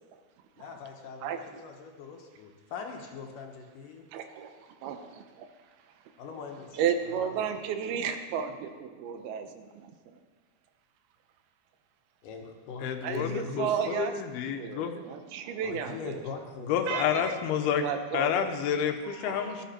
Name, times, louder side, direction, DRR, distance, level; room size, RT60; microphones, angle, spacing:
voice 1, 0.6-4.0 6.2-6.8 7.1-7.3 12.2-13.9 15.6-16.8, left 5 dB, 65° left, 2 dB, 2.6 m, -41 dB
voice 2, 4.1-5.5 6.7-10.2 13.0-16.2 16.9-17.3 17.8-18.5 19.1-19.7, right 7 dB, 80° right, 7 dB, 2.8 m, -33 dB
voice 3, 12.8-14.9 16.7-17.9 18.1-19.7, left 8 dB, 85° left, 7 dB, 2.9 m, -29 dB
17.5 x 12.5 x 4.4 m, 1.4 s
omnidirectional pair, 4.4 m